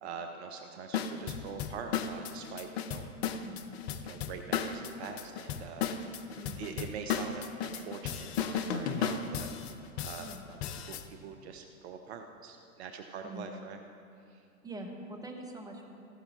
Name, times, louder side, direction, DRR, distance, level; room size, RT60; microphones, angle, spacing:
voice 1, 0.0-3.0 4.0-6.3 6.6-9.5 10.0-13.8 14.3-14.5, right 6 dB, 45° right, 6 dB, 0.7 m, -44 dB
sound 1, 0.9-11.1, left 7 dB, 45° left, 0.7 m, -35 dB
voice 2, 14.6-15.8, right 1 dB, 10° right, 1 dB, 1.2 m, -43 dB
15.0 x 11.5 x 3.0 m, 2.6 s
figure-of-eight pair, 95°, 44 cm